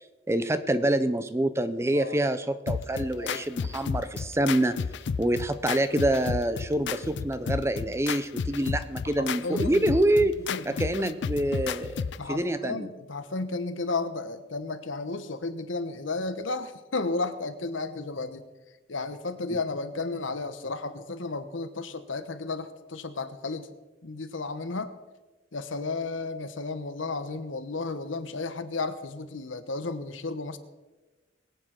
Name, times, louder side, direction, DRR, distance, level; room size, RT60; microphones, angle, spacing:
voice 1, 0.3-4.7 5.2-10.4 10.7-12.9 19.5-19.6, right 1 dB, 15° right, 12 dB, 0.5 m, -26 dB
sound 1, 2.7-12.3, left 6 dB, 60° left, 0.4 m, -33 dB
voice 2, 3.0-3.4 9.0-9.8 10.5-10.6 11.0-11.1 12.2-18.4 18.9-23.7 24.0-24.9 25.5-30.6, left 3 dB, 80° left, 10 dB, 1.1 m, -33 dB
22.0 x 8.7 x 4.5 m, 1.2 s
head